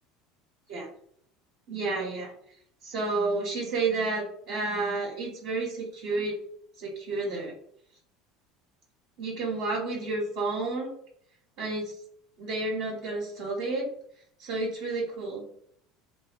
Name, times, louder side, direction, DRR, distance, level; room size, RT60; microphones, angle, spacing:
voice 1, 1.7-2.3 2.8-6.3 6.8-7.5 9.2-10.9 11.6-11.9 12.4-13.8 14.4-15.4, right 3 dB, 65° right, -3 dB, 0.8 m, -30 dB
2.7 x 2.1 x 2.4 m, 0.65 s
supercardioid pair, 90°, 0 cm